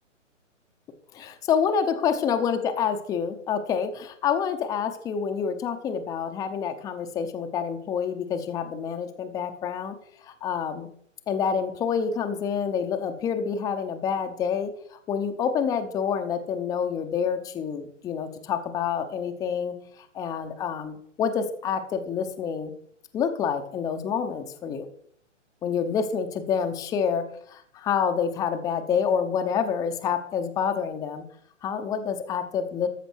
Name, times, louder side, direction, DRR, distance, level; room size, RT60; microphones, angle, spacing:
voice 1, 1.1-10.0 10.2-10.9 11.3-22.7 23.1-24.9 25.6-31.2 31.6-32.9, left 7 dB, 10° left, 6 dB, 0.7 m, -28 dB
14.0 x 5.9 x 6.2 m, 0.65 s
hypercardioid pair, 140°, 37 cm